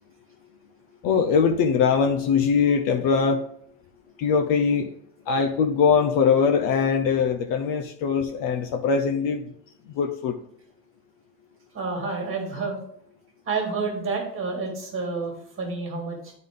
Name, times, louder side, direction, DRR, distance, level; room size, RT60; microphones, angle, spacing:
voice 1, 1.0-3.4 4.2-4.9 5.3-9.4 10.0-10.4, left 6 dB, 45° left, 5 dB, 0.6 m, -22 dB
voice 2, 11.7-12.8 13.5-16.3, right 4 dB, 25° right, 1 dB, 1.9 m, -29 dB
9.1 x 3.8 x 3.7 m, 0.69 s
supercardioid pair, 135°, 47 cm